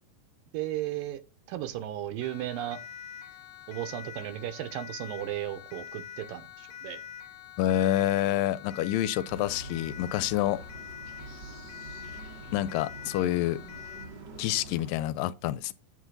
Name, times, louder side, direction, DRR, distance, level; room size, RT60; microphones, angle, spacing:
voice 1, 0.5-1.2 1.5-2.8 3.7-7.0, right 13 dB, 85° right, 2.7 m, -35 dB
Siren, 2.2-14.2, left 9 dB, 65° left, 2.0 m, -45 dB
voice 2, 7.6-10.6 12.5-13.6 14.4-15.7, left 13 dB, 80° left, 2.2 m, -27 dB
sound 1, 9.2-14.9, right 2 dB, 60° right, 1.1 m, -45 dB
8.0 x 7.4 x 3.9 m
omnidirectional pair, 4.0 m